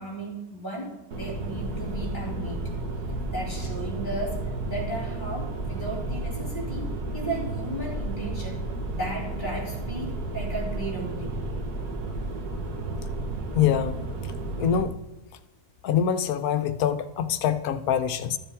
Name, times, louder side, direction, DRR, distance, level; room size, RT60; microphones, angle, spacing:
voice 1, 0.0-2.7 3.3-11.4, right 2 dB, 30° left, -1 dB, 2.8 m, -35 dB
sound 1, 1.1-14.8, right 2 dB, 80° right, 1.8 m, -32 dB
voice 2, 13.5-14.0 14.6-15.0 15.8-18.4, left 8 dB, 75° left, 11 dB, 1.1 m, -24 dB
13.5 x 7.1 x 3.6 m, 1.0 s
omnidirectional pair, 1.6 m